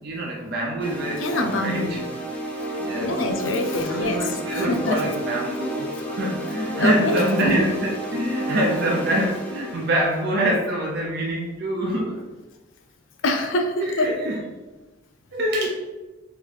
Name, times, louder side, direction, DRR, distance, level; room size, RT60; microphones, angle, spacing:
voice 1, 0.0-2.0 2.8-3.1 3.9-12.2 13.8-14.4 15.3-15.7, right 1 dB, 55° right, -2 dB, 0.5 m, -25 dB
sound 1, 0.8-10.9, right 1 dB, 5° left, 0.5 m, -31 dB
voice 2, 1.2-2.0 3.0-5.0 6.8-7.6 13.2-14.2, left 1 dB, 80° left, 5 dB, 0.5 m, -25 dB
3.2 x 3.1 x 3.9 m, 1.2 s
head